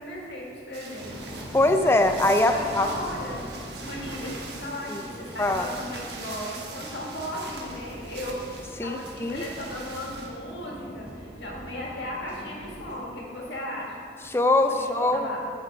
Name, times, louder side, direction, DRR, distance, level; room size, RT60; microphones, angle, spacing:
voice 1, 0.0-1.4 2.5-3.5 3.8-8.4 8.8-13.9 14.7-15.4, left 1 dB, 70° left, -3 dB, 1.9 m, -36 dB
sound 1, 0.7-10.3, right 3 dB, 65° right, 1.1 m, -43 dB
sound 2, 1.0-12.9, equal, 10° right, 1.5 m, -42 dB
voice 2, 1.5-2.9 4.9-5.0 5.4-5.7 8.8-9.4 14.3-15.3, left 2 dB, 15° left, 7 dB, 0.4 m, -22 dB
9.1 x 6.8 x 4.6 m, 2.4 s
head